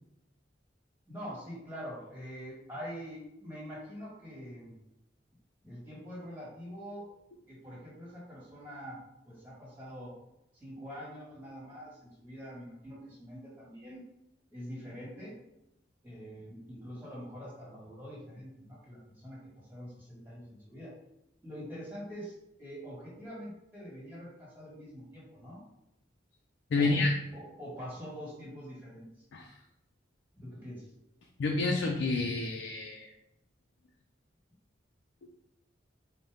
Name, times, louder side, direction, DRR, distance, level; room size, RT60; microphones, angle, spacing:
voice 1, 1.1-4.7 5.6-7.1 7.5-9.0 9.2-10.1 10.5-14.0 14.5-15.4 16.0-20.9 21.4-25.6 26.7-27.0 27.3-29.1 30.4-30.9, equal, 10° right, -7 dB, 1.4 m, -45 dB
voice 2, 26.7-27.1 29.3-29.5 31.4-33.1, left 3 dB, 75° left, 0 dB, 0.4 m, -29 dB
4.0 x 2.1 x 3.5 m, 0.86 s
head